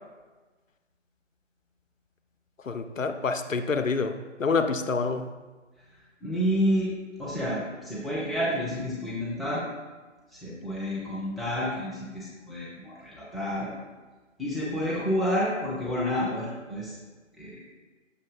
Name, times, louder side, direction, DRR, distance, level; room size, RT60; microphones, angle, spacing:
voice 1, 2.7-4.1 4.4-5.3, left 4 dB, 85° left, 8 dB, 0.6 m, -27 dB
voice 2, 6.2-9.6 10.3-13.7 14.4-16.9 17.4-17.7, equal, ahead, -8 dB, 0.5 m, -29 dB
6.5 x 3.0 x 5.1 m, 1.3 s
figure-of-eight pair, 155°, 38 cm